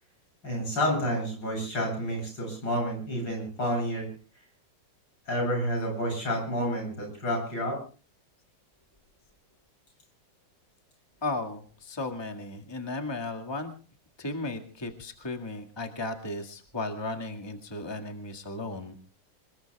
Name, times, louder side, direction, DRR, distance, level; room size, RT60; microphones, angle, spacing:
voice 1, 0.4-4.1 5.3-7.8, equal, 85° left, 1 dB, 8.6 m, -29 dB
voice 2, 11.2-13.7 14.2-19.0, left 2 dB, 15° left, 3 dB, 1.9 m, -35 dB
27.0 x 21.0 x 2.3 m, 0.39 s
omnidirectional pair, 1.9 m